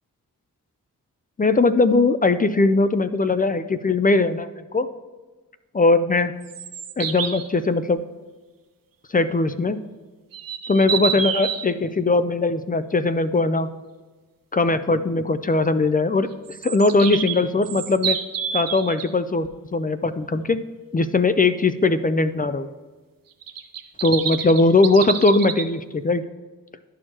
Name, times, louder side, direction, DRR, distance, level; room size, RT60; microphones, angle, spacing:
voice 1, 1.4-4.9 5.7-6.3 7.0-8.0 9.1-9.8 10.7-13.7 14.5-16.3 16.6-18.2 18.5-20.6 20.9-22.7 24.0-26.2, left 3 dB, 25° left, 12 dB, 0.4 m, -20 dB
sound 1, 6.4-7.5 10.3-11.7 16.5-19.1 23.4-25.6, right 8 dB, 70° right, 0.7 m, -28 dB
12.0 x 4.5 x 2.9 m, 1.3 s
cardioid pair, 50°, 34 cm